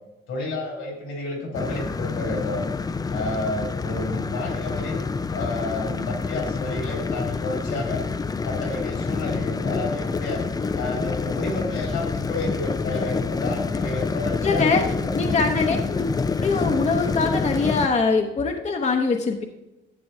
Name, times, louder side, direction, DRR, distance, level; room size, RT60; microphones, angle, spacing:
voice 1, 0.3-2.6 3.1-5.0 5.3-8.1 8.4-10.4 10.7-15.1 15.5-15.7, left 2 dB, 85° left, -1 dB, 3.2 m, -31 dB
sound 1, 1.5-17.9, left 4 dB, 20° left, 0.4 m, -27 dB
voice 2, 14.4-14.8 15.1-16.1 16.4-19.4, left 4 dB, 35° left, 3 dB, 0.8 m, -23 dB
11.0 x 7.7 x 2.7 m, 0.96 s
cardioid pair, 90°, 20 cm